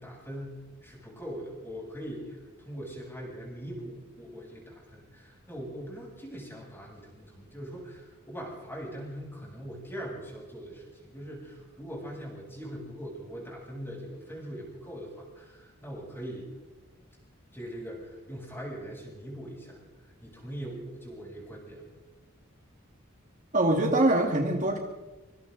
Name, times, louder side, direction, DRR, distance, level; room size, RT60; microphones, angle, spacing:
voice 1, 0.0-16.5 17.5-21.9, equal, 10° left, -2 dB, 7.9 m, -41 dB
voice 2, 23.5-24.8, right 1 dB, 40° right, 2 dB, 2.1 m, -23 dB
26.0 x 25.5 x 4.0 m, 1.2 s
head